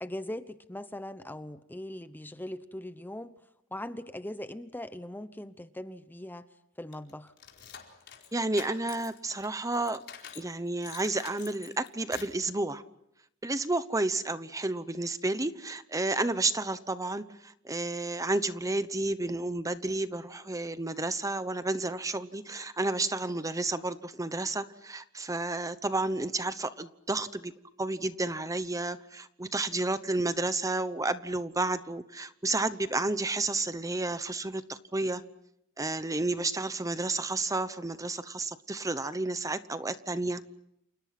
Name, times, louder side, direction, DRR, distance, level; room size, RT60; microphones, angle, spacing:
voice 1, 0.0-3.3 3.7-6.5 6.8-7.3, left 1 dB, 10° left, 0.9 m, -40 dB
sound 1, 6.9-10.5 10.8-12.4, left 8 dB, 55° left, 4.6 m, -47 dB
voice 2, 8.3-10.0 10.3-12.8 13.4-27.5 27.8-35.2 35.8-40.4, right 2 dB, 15° right, 1.0 m, -31 dB
29.0 x 29.0 x 6.0 m
head